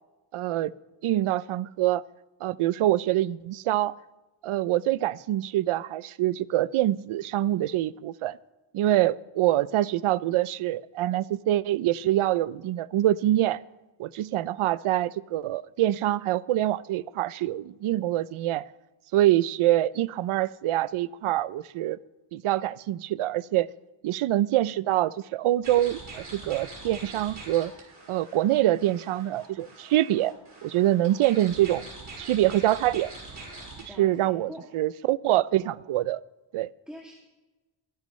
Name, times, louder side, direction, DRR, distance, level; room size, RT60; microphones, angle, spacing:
voice 1, 0.3-0.7 1.0-2.0 2.4-3.9 4.4-8.4 8.7-13.6 14.0-18.7 19.1-22.0 22.3-23.7 24.0-27.7 28.1-30.3 30.6-31.9 32.2-33.1 34.0-36.2 36.5-36.7, right 14 dB, 80° right, 0.6 m, -25 dB
sound 1, 25.6-33.8, right 2 dB, 40° right, 5.1 m, -44 dB
voice 2, 33.9-34.7 36.9-37.2, equal, ahead, 2.2 m, -44 dB
25.5 x 10.5 x 3.2 m
wide cardioid pair, 115°, 50 cm